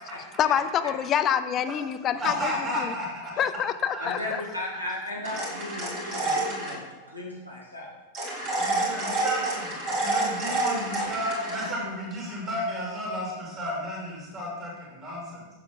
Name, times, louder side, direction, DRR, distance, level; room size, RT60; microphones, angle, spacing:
voice 1, 0.4-2.5 2.8-2.9 3.4-4.4, left 9 dB, 30° left, 11 dB, 0.4 m, -26 dB
voice 2, 2.2-3.3 3.9-4.3 8.3-15.5, equal, 25° right, -5 dB, 2.9 m, -33 dB
voice 3, 4.0-6.8 7.1-7.9, left 1 dB, 90° right, -3 dB, 2.0 m, -35 dB
sound 1, 5.2-6.8 8.1-11.7, right 2 dB, 40° right, 2.8 m, -29 dB
8.0 x 6.9 x 3.6 m, 1.2 s
figure-of-eight pair, 90°, 0 cm